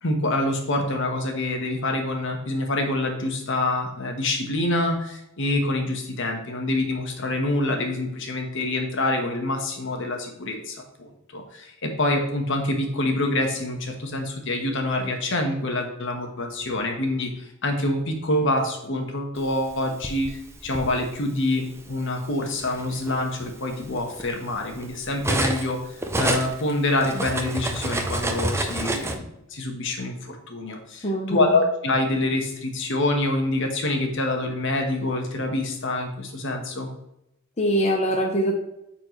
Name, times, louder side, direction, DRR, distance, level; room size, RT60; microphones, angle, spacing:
voice 1, 0.0-25.8 26.2-36.9, left 2 dB, 65° left, 3 dB, 1.3 m, -26 dB
Cutlery silverware, 19.6-20.9 21.9-22.1 22.5-25.7 26.0-29.1, right 1 dB, 15° right, 0.6 m, -28 dB
voice 2, 31.0-31.6 37.6-38.6, equal, 30° left, 0 dB, 0.9 m, -23 dB
9.2 x 4.4 x 3.1 m, 0.82 s
head